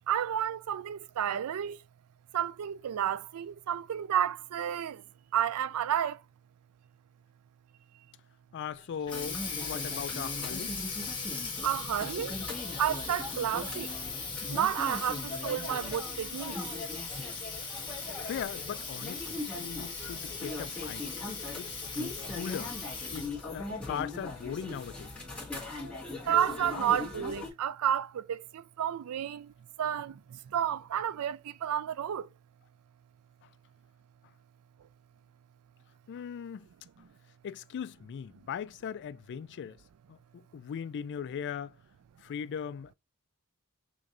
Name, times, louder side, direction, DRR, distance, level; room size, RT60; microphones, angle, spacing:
voice 1, 0.1-1.8 2.3-5.0 5.3-6.2 11.6-12.3 12.8-13.9 14.5-16.6 26.3-28.4 28.8-29.5 29.8-30.1 30.5-32.2, right 9 dB, 85° right, 0.4 m, -31 dB
voice 2, 8.5-10.8 18.2-21.0 21.6-22.7 23.1-25.1 36.1-36.7 37.4-39.8 40.1-41.8 42.2-42.9, left 8 dB, 55° left, 0.3 m, -39 dB
Water tap faucet, 8.8-23.5, left 4 dB, 20° left, 1.3 m, -39 dB
sound 1, 9.1-27.5, left 2 dB, 5° left, 2.0 m, -40 dB
6.2 x 3.0 x 2.6 m
head